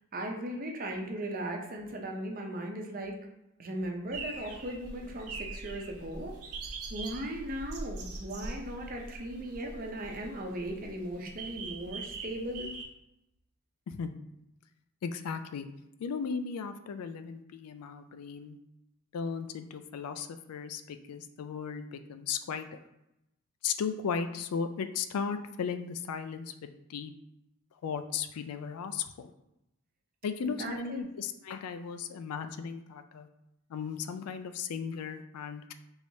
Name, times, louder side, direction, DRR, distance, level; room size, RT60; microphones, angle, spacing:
voice 1, 0.1-3.1 3.6-6.4 6.9-12.7 30.4-31.0, right 1 dB, 40° right, 2 dB, 0.6 m, -37 dB
sound 1, 4.1-12.9, right 3 dB, 85° right, 0.7 m, -42 dB
voice 2, 15.0-15.7 16.0-18.6 19.1-22.8 23.6-27.1 27.8-29.3 30.2-33.3 33.7-35.7, left 6 dB, 85° left, 9 dB, 0.3 m, -36 dB
4.5 x 3.1 x 2.7 m, 0.88 s
head